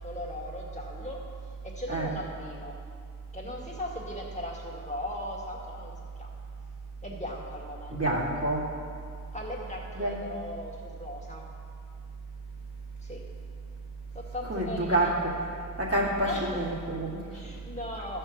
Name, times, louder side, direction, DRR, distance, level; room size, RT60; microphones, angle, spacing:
voice 1, 0.0-1.3 1.6-2.8 3.3-6.3 7.0-8.2 9.3-11.5 13.0-13.2 14.1-15.2 16.2-16.6 17.3-18.2, left 1 dB, 20° left, -2 dB, 2.0 m, -38 dB
voice 2, 7.9-8.7 9.9-10.2 14.5-15.3 15.8-17.2, right 1 dB, 45° right, -5 dB, 2.1 m, -28 dB
13.0 x 4.5 x 7.3 m, 2.3 s
wide cardioid pair, 55°, 33 cm